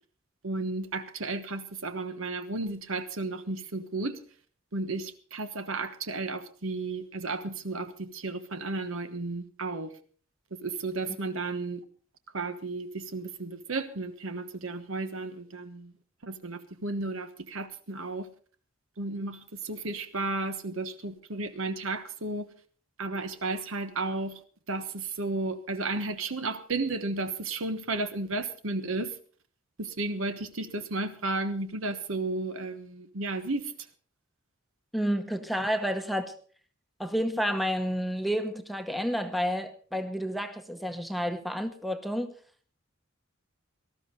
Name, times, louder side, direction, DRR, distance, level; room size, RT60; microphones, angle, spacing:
voice 1, 0.4-4.2 4.7-9.9 10.5-11.8 12.3-15.9 16.2-18.3 19.0-22.5 23.0-24.4 24.7-29.2 29.8-33.7, right 3 dB, 70° right, 1.2 m, -33 dB
voice 2, 34.9-36.3 37.0-42.3, equal, ahead, 1.0 m, -30 dB
18.5 x 13.5 x 4.0 m
head